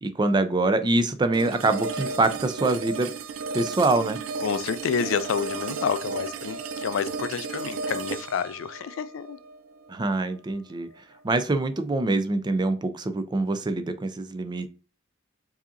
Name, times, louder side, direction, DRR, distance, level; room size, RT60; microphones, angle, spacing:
voice 1, 0.0-3.1 3.5-4.2 9.9-10.9 11.2-14.7, right 2 dB, 20° right, 0.4 m, -24 dB
sound 1, 1.3-10.4, right 4 dB, 85° right, 0.4 m, -34 dB
voice 2, 4.4-9.4, left 7 dB, 75° left, 0.3 m, -29 dB
4.7 x 2.8 x 2.5 m
head